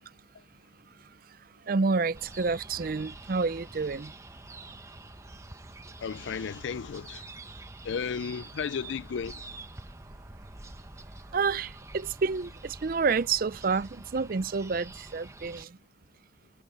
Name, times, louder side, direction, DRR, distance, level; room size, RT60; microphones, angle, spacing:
voice 1, 0.8-4.1 11.3-15.8, right 4 dB, 50° right, 0.5 m, -29 dB
sound 1, 2.1-15.6, right 2 dB, 15° right, 0.9 m, -47 dB
voice 2, 6.0-7.3 7.8-9.5, left 6 dB, 75° left, 0.4 m, -34 dB
head